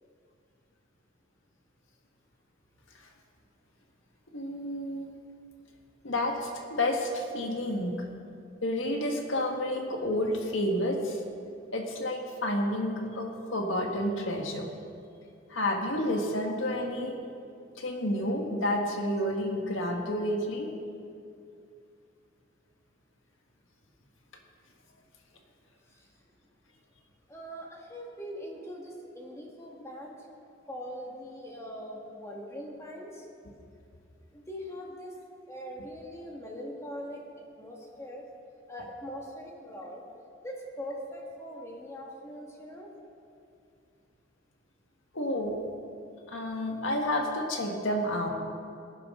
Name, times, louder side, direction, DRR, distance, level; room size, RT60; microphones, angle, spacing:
voice 1, 4.3-5.1 6.0-7.9 8.6-11.2 11.7-14.7 15.5-17.2 17.8-20.7 45.1-45.6 46.3-48.3, left 1 dB, 80° left, 2 dB, 1.7 m, -30 dB
voice 2, 27.3-30.3 30.7-33.3 34.3-35.2 35.5-38.3 38.7-40.0 40.4-42.9, equal, 15° left, -2 dB, 1.8 m, -41 dB
18.5 x 11.0 x 3.8 m, 2.5 s
head